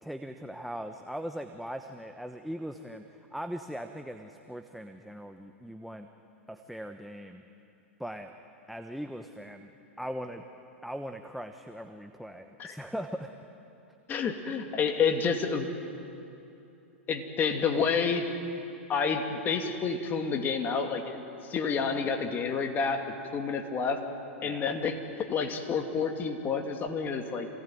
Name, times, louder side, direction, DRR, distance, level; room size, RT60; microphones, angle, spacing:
voice 1, 0.0-6.1 6.5-7.4 8.0-8.3 8.7-9.7 10.0-10.4 10.8-13.4 24.4-24.8, equal, ahead, 5 dB, 1.0 m, -40 dB
voice 2, 14.1-15.7 17.1-18.3 18.9-23.0 23.3-24.0 24.4-27.5, left 5 dB, 30° left, 4 dB, 2.5 m, -29 dB
26.5 x 18.5 x 9.3 m, 2.8 s
hypercardioid pair, 115°, 7 cm